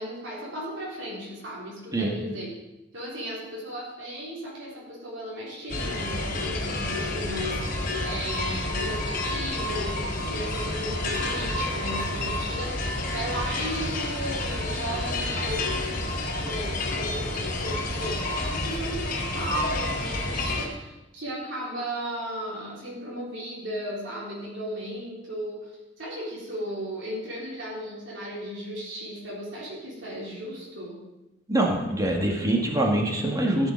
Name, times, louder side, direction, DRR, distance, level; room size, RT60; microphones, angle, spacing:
voice 1, 0.0-2.5 2.9-31.0, equal, 85° right, -6 dB, 3.7 m, -35 dB
sound 1, 5.7-20.7, left 2 dB, 50° left, 4.0 m, -29 dB
voice 2, 31.5-33.7, right 1 dB, 20° right, 0 dB, 1.8 m, -24 dB
14.0 x 7.0 x 5.2 m, 1.0 s
head